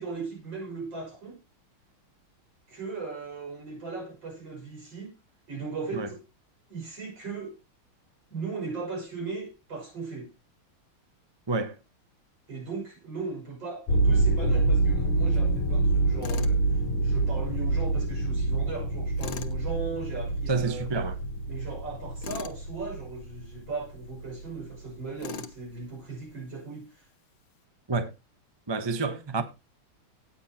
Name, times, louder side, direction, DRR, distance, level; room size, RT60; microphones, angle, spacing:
voice 1, 0.0-1.4 2.7-5.1 5.5-6.2 6.7-7.5 8.3-10.3 12.5-16.6 17.0-20.9 21.4-27.0, right 4 dB, 60° right, 6.8 m, -37 dB
sound 1, 13.9-24.7, right 2 dB, 85° left, 2.4 m, -27 dB
Tools, 16.2-16.6 19.2-19.6 22.2-22.6 25.2-25.6, left 6 dB, 65° left, 1.8 m, -39 dB
voice 2, 20.5-21.1 27.9-28.1 28.7-29.4, right 3 dB, 20° right, 0.7 m, -28 dB
18.0 x 7.0 x 2.9 m
omnidirectional pair, 2.3 m